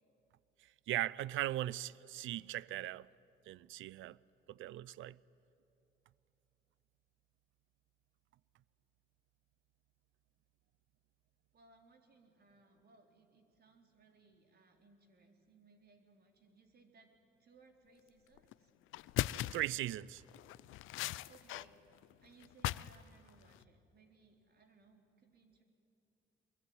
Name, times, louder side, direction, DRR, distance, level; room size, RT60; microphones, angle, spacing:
voice 1, 0.9-3.1 3.5-4.2 4.5-5.2 19.5-20.2, right 14 dB, 80° right, 0.5 m, -38 dB
voice 2, 11.5-17.1 17.4-18.7 21.3-21.8 22.2-25.6, right 3 dB, 55° right, 3.6 m, -65 dB
sound 1, 18.4-18.5 18.9-19.7 20.3-21.7 21.9-23.0 23.3-23.6, left 16 dB, 85° left, 0.5 m, -39 dB
23.5 x 21.5 x 9.5 m
cardioid pair, 90°, 20 cm